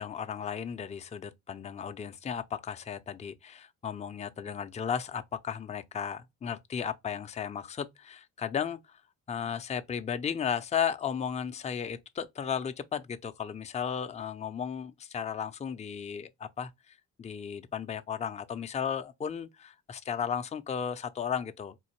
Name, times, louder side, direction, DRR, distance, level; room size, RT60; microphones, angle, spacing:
voice 1, 0.0-9.0 9.3-21.7, left 7 dB, 25° left, 0.4 m, -35 dB
3.8 x 2.6 x 4.3 m
cardioid pair, 90°, 30 cm